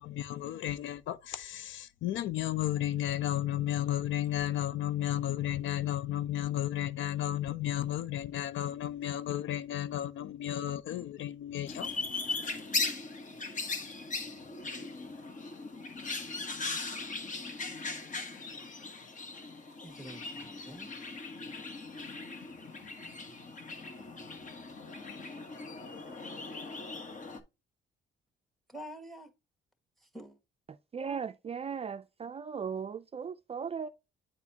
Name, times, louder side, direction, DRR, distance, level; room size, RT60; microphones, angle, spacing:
voice 1, 0.0-11.9, left 12 dB, 75° left, 0.5 m, -33 dB
sound 1, 11.7-27.4, left 3 dB, 40° left, 1.2 m, -39 dB
voice 2, 19.8-20.9 28.7-29.3 30.0-30.4, equal, ahead, 1.6 m, -47 dB
voice 3, 30.9-33.9, right 6 dB, 30° right, 0.4 m, -37 dB
9.1 x 4.1 x 2.8 m
cardioid pair, 90°, 20 cm